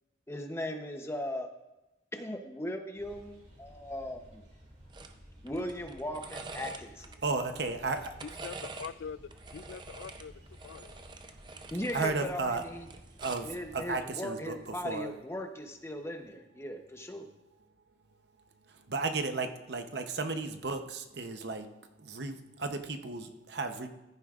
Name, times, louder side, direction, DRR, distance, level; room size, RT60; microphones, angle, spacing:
voice 1, 0.3-1.5 2.1-4.4 5.4-7.1 11.7-12.9 13.4-17.3, left 1 dB, 15° left, 5 dB, 0.8 m, -38 dB
sound 1, 3.0-14.0, equal, 40° right, 2.3 m, -55 dB
sound 2, 4.9-5.1 5.5-7.2 7.8-8.9 9.3-12.1 12.4-13.6 14.7-14.9, right 3 dB, 25° right, 0.6 m, -46 dB
voice 2, 7.2-8.2 11.9-12.6 13.2-15.1 18.7-21.7 22.0-23.9, right 3 dB, 65° right, 7 dB, 0.8 m, -34 dB
voice 3, 8.2-11.2, left 6 dB, 85° left, 18 dB, 0.3 m, -44 dB
14.5 x 11.0 x 2.5 m, 0.97 s
head